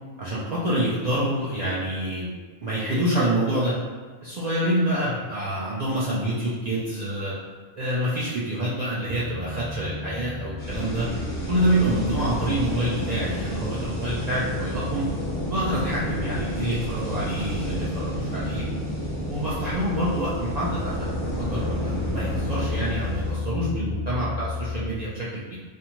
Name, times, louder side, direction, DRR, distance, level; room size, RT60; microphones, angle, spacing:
voice 1, 0.2-2.3 2.6-3.7 4.2-7.3 7.8-11.1 11.5-15.0 15.5-18.6 19.3-25.5, right 1 dB, 70° right, -8 dB, 0.4 m, -27 dB
sound 1, 9.0-24.9, left 4 dB, 50° right, 0.9 m, -34 dB
sound 2, 10.6-23.4, equal, 40° left, 0.6 m, -31 dB
2.5 x 2.2 x 2.9 m, 1.4 s
omnidirectional pair, 1.3 m